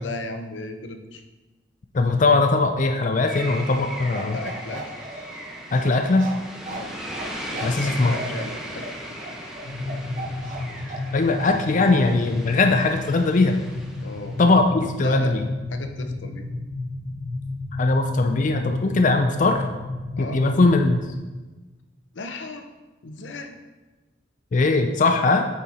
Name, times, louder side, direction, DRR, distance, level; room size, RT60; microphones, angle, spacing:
voice 1, 0.0-1.2 4.3-5.0 6.7-6.9 7.5-9.0 14.0-14.4 15.0-15.3 15.7-16.4 20.2-20.4 22.1-22.6 23.0-23.6, left 3 dB, 85° left, 6 dB, 0.7 m, -35 dB
voice 2, 1.9-4.4 5.7-6.3 7.6-8.1 11.1-13.6 14.4-15.5 17.8-19.7 20.2-21.0 24.5-25.5, left 3 dB, 45° left, 5 dB, 0.4 m, -20 dB
sound 1, 3.2-14.6, equal, 5° right, 0.9 m, -38 dB
Bark, 4.1-11.1 11.4-11.6, right 2 dB, 45° right, 1.2 m, -37 dB
sound 2, 9.6-21.2, left 2 dB, 65° left, 1.1 m, -32 dB
8.5 x 4.4 x 4.1 m, 1.2 s
head